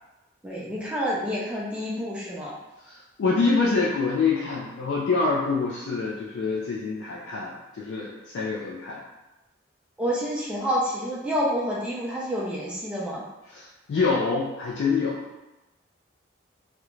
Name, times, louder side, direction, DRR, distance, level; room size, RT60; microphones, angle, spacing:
voice 1, 0.4-2.5 10.0-13.2, equal, 5° right, -6 dB, 0.4 m, -28 dB
voice 2, 2.8-9.0 13.5-15.2, left 4 dB, 80° left, -4 dB, 0.3 m, -26 dB
2.4 x 2.1 x 3.0 m, 1.0 s
head